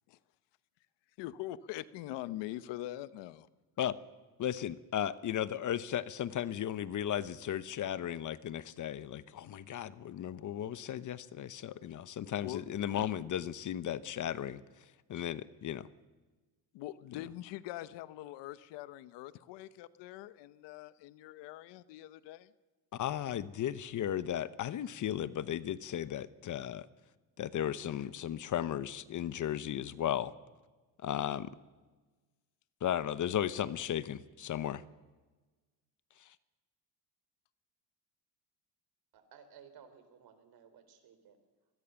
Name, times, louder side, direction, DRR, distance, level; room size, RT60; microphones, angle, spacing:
voice 1, 1.2-3.5 12.4-12.6 15.1-15.2 16.7-22.5, left 14 dB, 80° left, 16 dB, 1.0 m, -43 dB
voice 2, 4.4-14.6 15.1-15.9 22.9-26.9 27.4-30.3 31.0-31.5 32.8-34.8, left 10 dB, 45° left, 16 dB, 0.9 m, -35 dB
voice 3, 39.1-41.4, right 7 dB, 60° right, 9 dB, 4.2 m, -57 dB
24.0 x 20.5 x 7.1 m, 1.3 s
cardioid pair, 120°, 41 cm